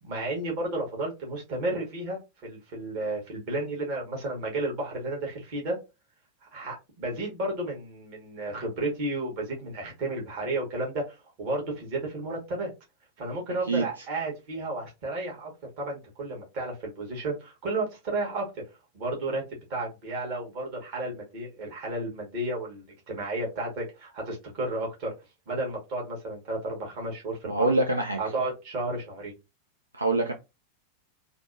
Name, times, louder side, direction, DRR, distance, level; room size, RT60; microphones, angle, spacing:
voice 1, 0.0-5.8 6.5-12.7 13.2-15.5 15.8-18.6 18.9-25.1 25.5-27.7 28.2-29.3, right 2 dB, 45° right, -1 dB, 1.3 m, -32 dB
voice 2, 27.5-28.2 29.9-30.3, right 2 dB, 80° right, 4 dB, 0.4 m, -24 dB
3.3 x 2.1 x 2.6 m, 0.25 s
figure-of-eight pair, 90°, 0 cm